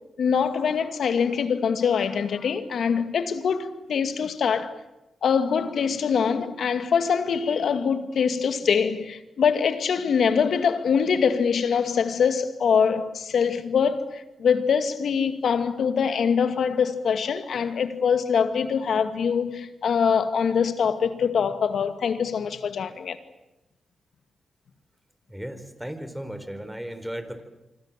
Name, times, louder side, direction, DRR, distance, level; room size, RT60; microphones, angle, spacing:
voice 1, 0.2-4.7 5.2-23.2, left 6 dB, 75° left, 2.2 m, -24 dB
voice 2, 25.3-27.4, equal, 5° right, 4.5 m, -35 dB
26.5 x 25.5 x 7.6 m
cardioid pair, 50°, 0 cm